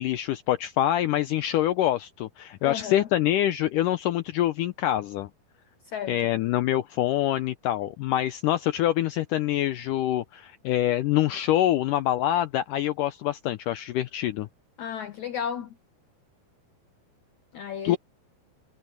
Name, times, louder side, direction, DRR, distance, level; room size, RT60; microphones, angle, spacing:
voice 1, 0.0-5.3 6.1-14.5 17.8-18.0, left 13 dB, 90° left, 1.9 m, -25 dB
voice 2, 2.6-3.1 5.9-6.2 14.8-15.8 17.5-18.0, left 8 dB, 60° left, 2.2 m, -33 dB
omnidirectional pair, 4.5 m